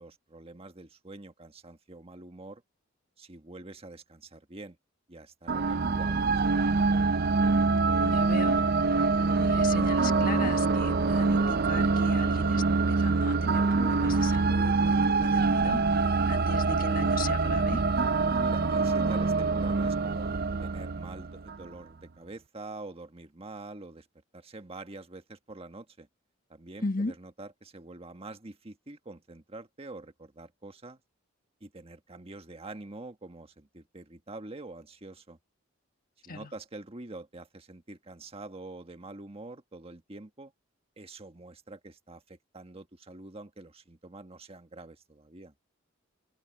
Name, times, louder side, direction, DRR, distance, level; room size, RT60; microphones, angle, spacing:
voice 1, 0.0-2.6 3.2-4.8 5.1-7.0 18.2-20.3 20.6-24.1 24.3-26.1 26.5-31.0 31.6-35.4 36.3-40.5 41.0-45.5, right 2 dB, 30° right, 1.5 m, -46 dB
sound 1, 5.5-21.7, right 3 dB, 50° right, 0.6 m, -25 dB
voice 2, 8.0-8.6 9.3-17.8 26.8-27.1 36.3-36.5, left 3 dB, 45° left, 1.6 m, -38 dB
open air
head